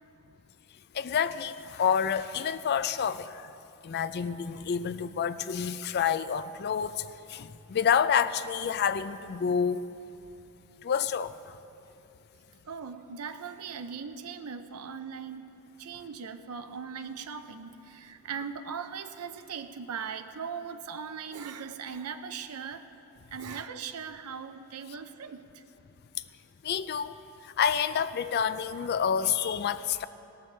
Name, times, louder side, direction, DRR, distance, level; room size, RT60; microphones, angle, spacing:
voice 1, 0.9-3.5 3.8-9.9 10.8-11.4 26.6-27.1 27.4-30.1, left 7 dB, 45° left, 0.4 m, -28 dB
voice 2, 12.6-15.5 15.8-22.9 23.3-25.6, right 6 dB, 85° right, 0.6 m, -39 dB
17.0 x 14.0 x 3.3 m
head